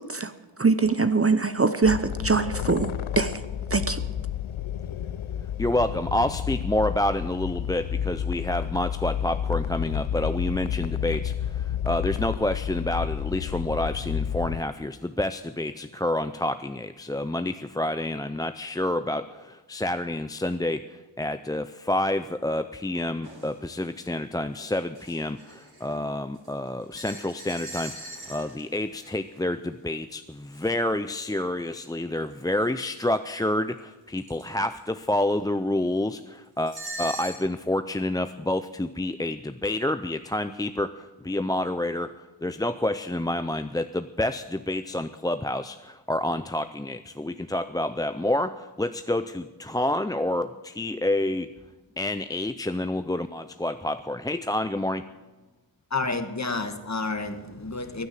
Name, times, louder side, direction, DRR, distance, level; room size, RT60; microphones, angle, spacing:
voice 1, 0.6-3.4 3.7-4.0, right 4 dB, 30° right, 0.7 m, -23 dB
sound 1, 1.8-14.6, left 9 dB, 85° left, 0.6 m, -30 dB
voice 2, 5.6-51.5 52.0-55.1, left 1 dB, 10° left, 0.4 m, -28 dB
sound 2, 23.2-23.5 24.0-24.1 24.5-26.0 26.3-29.3 30.5-30.7 32.3-32.4 33.1-33.2 33.8-33.9 34.2-34.7 36.6-37.5, right 2 dB, 50° right, 3.4 m, -41 dB
voice 3, 55.9-58.1, left 3 dB, 35° left, 1.4 m, -30 dB
15.5 x 9.7 x 7.5 m
wide cardioid pair, 55°, 47 cm